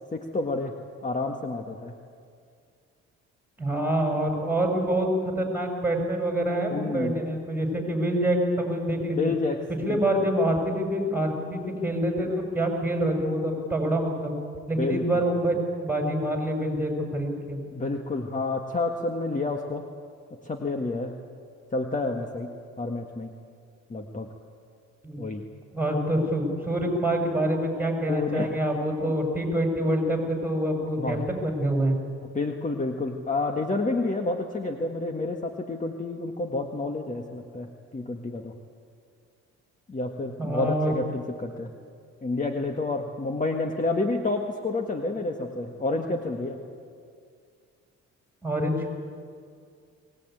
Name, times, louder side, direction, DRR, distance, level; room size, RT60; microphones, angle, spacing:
voice 1, 0.1-0.8 1.0-1.9 6.7-7.2 9.2-10.0 14.7-15.0 17.7-19.9 20.4-21.1 21.7-23.3 23.9-24.3 25.2-25.4 28.1-28.6 31.0-31.3 32.3-38.5 39.9-41.7 42.2-46.6, left 2 dB, 25° left, 4 dB, 1.6 m, -29 dB
voice 2, 3.6-5.1 5.4-9.3 9.8-14.3 14.7-15.6 15.8-17.6 25.0-25.3 25.7-32.0 40.4-40.9 48.4-48.9, right 1 dB, 5° right, 2 dB, 6.2 m, -26 dB
22.0 x 19.0 x 9.2 m, 2.2 s
cardioid pair, 90°, 30 cm